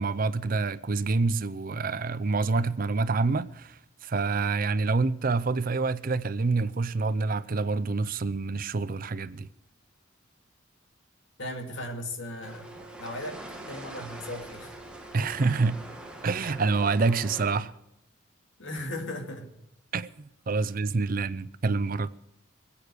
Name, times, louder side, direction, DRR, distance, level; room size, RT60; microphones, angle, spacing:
voice 1, 0.0-9.5 15.1-15.8 16.2-17.7 19.9-22.1, right 3 dB, 45° right, 0.5 m, -27 dB
voice 2, 11.4-12.7 13.0-13.4 13.7-14.7 18.6-19.5 20.5-20.6, left 1 dB, 65° left, 2.4 m, -37 dB
sound 1, 12.4-17.6, right 1 dB, 5° right, 2.1 m, -43 dB
22.0 x 8.8 x 6.6 m
head